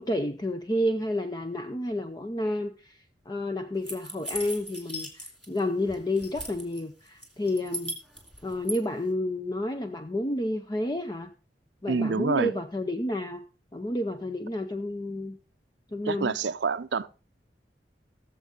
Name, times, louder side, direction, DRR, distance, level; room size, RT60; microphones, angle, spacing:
voice 1, 0.0-3.0 3.3-7.9 8.4-11.3 11.8-13.4 13.7-15.4 15.9-16.4, left 1 dB, 25° left, 0.7 m, -30 dB
sound 1, 3.8-5.6 5.9-6.8 7.2-8.8, equal, 5° left, 2.8 m, -37 dB
voice 2, 11.9-12.5 16.1-17.1, right 4 dB, 85° right, 0.6 m, -27 dB
17.5 x 7.4 x 3.9 m
head